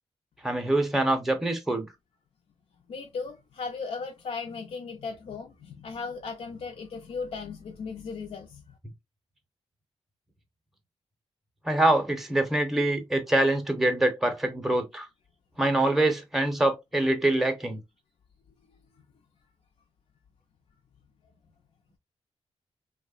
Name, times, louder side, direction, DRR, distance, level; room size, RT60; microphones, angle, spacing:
voice 1, 0.4-1.9 11.6-15.1 15.6-17.8, right 1 dB, ahead, 0.6 m, -25 dB
voice 2, 2.9-8.7, left 5 dB, 65° left, 0.4 m, -37 dB
2.8 x 2.0 x 2.3 m
cardioid pair, 90°, 11 cm